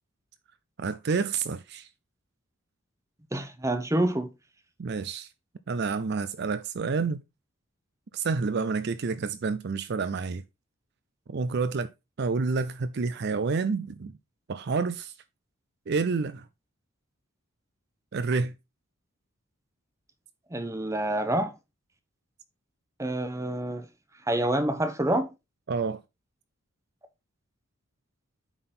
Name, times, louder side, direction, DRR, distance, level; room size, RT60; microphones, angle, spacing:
voice 1, 0.8-1.9 4.8-5.3 5.7-7.2 8.1-10.4 11.3-11.9 12.2-14.1 14.5-15.1 15.9-16.4 18.1-18.5 25.7-26.0, right 4 dB, 50° right, 0.4 m, -29 dB
voice 2, 3.3-4.3 20.5-21.5 23.0-23.9 24.3-25.3, right 1 dB, 15° right, 0.8 m, -27 dB
8.9 x 3.9 x 4.2 m
head